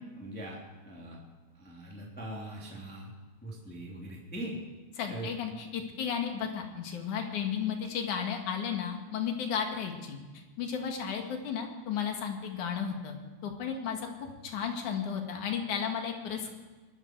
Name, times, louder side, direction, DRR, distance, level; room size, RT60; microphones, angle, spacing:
voice 1, 0.2-0.6 0.8-1.2 1.6-3.1 3.4-4.5 5.1-5.3, right 1 dB, 5° left, -3 dB, 2.8 m, -41 dB
voice 2, 5.0-10.2 10.6-13.1 13.4-16.5, left 7 dB, 80° left, 3 dB, 3.3 m, -34 dB
22.0 x 13.0 x 4.7 m, 1.3 s
omnidirectional pair, 3.5 m